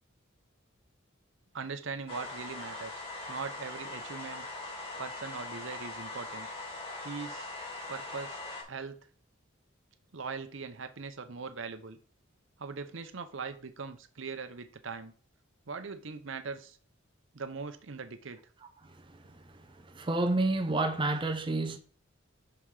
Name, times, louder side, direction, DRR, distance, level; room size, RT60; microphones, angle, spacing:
voice 1, 1.5-4.5 5.0-6.5 7.0-7.5 7.9-8.4 8.7-9.0 10.1-12.0 12.6-15.1 15.7-16.8 17.3-18.4, right 5 dB, 70° right, 0.8 m, -40 dB
sound 1, 2.1-8.6, left 2 dB, 30° left, 2.5 m, -41 dB
voice 2, 19.8-21.8, right 2 dB, 25° right, 0.7 m, -29 dB
5.8 x 5.6 x 4.9 m
head